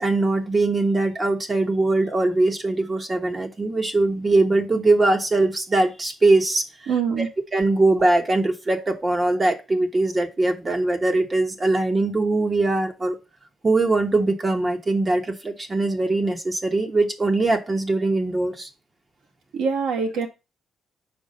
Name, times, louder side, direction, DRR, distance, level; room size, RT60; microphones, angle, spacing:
voice 1, 0.0-6.9 7.2-7.3 7.5-13.2 13.6-18.7, right 2 dB, 25° right, 1.3 m, -21 dB
voice 2, 6.9-7.3 19.5-20.3, right 6 dB, 85° right, 1.9 m, -24 dB
5.3 x 4.7 x 5.4 m
cardioid pair, 90°, 0 cm